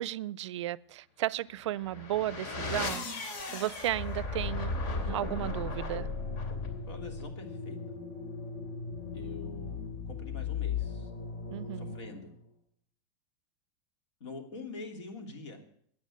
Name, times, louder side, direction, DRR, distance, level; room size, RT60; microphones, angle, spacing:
voice 1, 0.0-3.1 3.5-4.7 5.1-6.1 11.5-12.0, right 14 dB, 85° right, 0.4 m, -34 dB
sound 1, 1.7-12.4, left 4 dB, 55° left, 3.0 m, -36 dB
voice 2, 6.9-7.8 9.1-9.8 10.1-11.1 11.7-12.3 14.2-15.6, left 2 dB, 85° left, 3.0 m, -44 dB
9.6 x 9.5 x 9.4 m
supercardioid pair, 120°, 15 cm